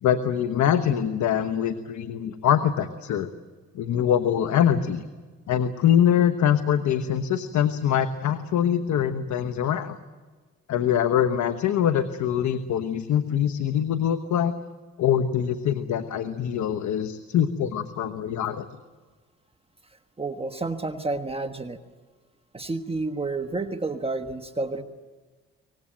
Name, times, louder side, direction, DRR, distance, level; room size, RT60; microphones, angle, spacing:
voice 1, 0.0-3.3 3.7-5.0 5.5-10.0 10.7-14.5 15.0-18.7, left 9 dB, 70° left, 9 dB, 1.2 m, -23 dB
voice 2, 19.9-21.8 22.5-24.8, right 3 dB, 20° right, 7 dB, 1.4 m, -30 dB
24.0 x 19.5 x 9.0 m, 1.4 s
cardioid pair, 90°, 30 cm